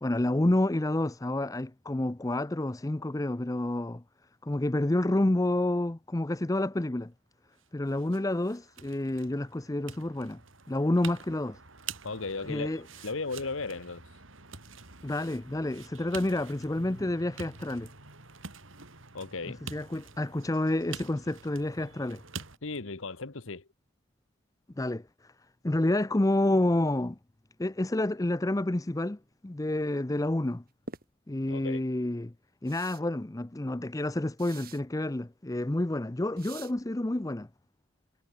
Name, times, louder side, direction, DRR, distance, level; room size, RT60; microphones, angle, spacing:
voice 1, 0.0-4.0 4.4-7.1 7.7-10.4 10.7-11.6 12.5-12.8 15.0-17.9 19.5-22.2 24.8-25.0 25.6-27.2 27.6-29.2 29.4-30.6 31.3-32.3 32.6-37.5, left 1 dB, 15° left, 0.6 m, -29 dB
sound 1, 7.6-22.6, right 5 dB, 70° right, 5.7 m, -47 dB
voice 2, 12.0-14.0 19.1-19.6 22.6-23.7 31.5-31.8, left 3 dB, 70° left, 1.3 m, -36 dB
sound 2, 30.9-31.0 32.7-33.0 34.4-34.8 36.4-36.7, right 4 dB, 45° right, 3.1 m, -45 dB
head